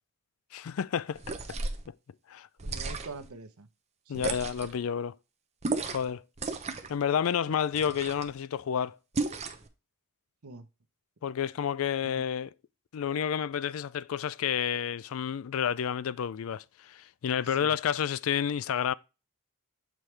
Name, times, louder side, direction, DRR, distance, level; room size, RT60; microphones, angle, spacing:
voice 1, 0.5-1.2 2.3-2.5 4.1-5.1 5.8-6.2 6.9-9.0 11.2-12.5 12.9-18.9, left 8 dB, 75° left, 0.4 m, -30 dB
sound 1, 1.2-1.9 2.6-3.3 4.1-4.8 5.6-6.1 6.4-6.9 7.7-8.3 9.1-9.7, right 3 dB, 30° right, 0.8 m, -34 dB
voice 2, 2.6-3.7 4.1-4.4 5.7-5.8 10.4-10.7 12.0-12.2 17.4-17.7, right 3 dB, 90° right, 0.9 m, -45 dB
7.6 x 4.6 x 3.3 m
head